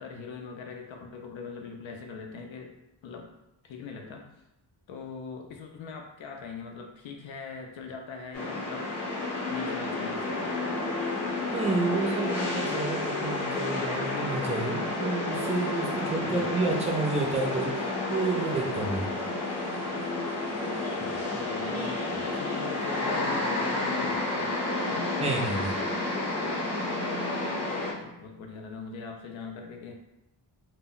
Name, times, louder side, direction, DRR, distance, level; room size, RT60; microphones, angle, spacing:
voice 1, 0.0-2.8 3.0-3.3 3.6-4.3 4.9-8.9 9.5-10.6 16.2-16.5 21.0-24.6 24.9-25.2 27.7-29.9, left 5 dB, 85° left, 3 dB, 0.5 m, -41 dB
sound 1, 8.3-27.9, left 2 dB, 35° left, 0.7 m, -30 dB
voice 2, 11.5-17.7 18.1-19.1 25.2-25.8, right 3 dB, 15° right, 0 dB, 0.4 m, -30 dB
2.1 x 2.1 x 3.6 m, 0.90 s
wide cardioid pair, 110°, 45 cm